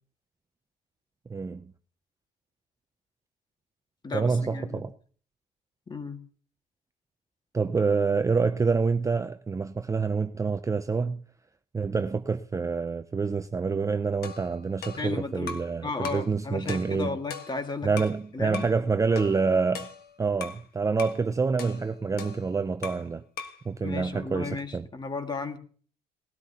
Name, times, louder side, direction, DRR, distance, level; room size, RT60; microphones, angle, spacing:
voice 1, 1.3-1.6 4.1-4.9 7.5-11.2 11.7-17.2 17.8-19.9 20.2-23.2 23.7-24.9, right 4 dB, 20° right, 0.5 m, -27 dB
voice 2, 4.0-4.9 5.9-6.2 15.0-15.6 15.8-18.0 18.3-18.7 23.8-25.6, left 4 dB, 25° left, 1.9 m, -34 dB
sound 1, 14.2-15.8 16.0-16.3 16.7-18.2 18.5-18.8 19.2-20.6 21.0-21.2 21.6-23.1 23.4-23.7, left 5 dB, 65° left, 1.7 m, -40 dB
19.5 x 13.0 x 2.9 m
cardioid pair, 110°, 17 cm